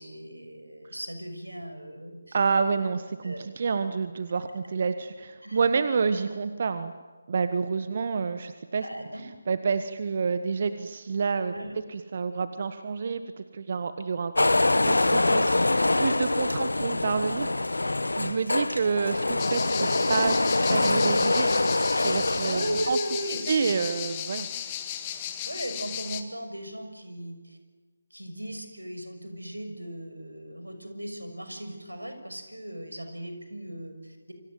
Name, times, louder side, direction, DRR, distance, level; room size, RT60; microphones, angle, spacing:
voice 1, 0.0-2.4 3.2-3.8 5.4-5.6 8.8-9.2 11.5-11.7 18.7-19.0 22.4-23.9 25.4-27.6 28.1-34.3, equal, 85° right, 7 dB, 6.4 m, -37 dB
voice 2, 2.3-6.9 7.3-8.8 9.5-11.5 11.9-15.5 16.0-17.5 18.2-21.5 22.0-23.0 23.5-24.5, right 5 dB, 40° right, 11 dB, 1.4 m, -28 dB
sound 1, 14.4-22.9, left 2 dB, 70° left, 1.5 m, -24 dB
sound 2, 19.4-26.2, left 10 dB, 20° left, 1.9 m, -35 dB
28.0 x 25.5 x 8.0 m, 1.4 s
figure-of-eight pair, 150°, 0 cm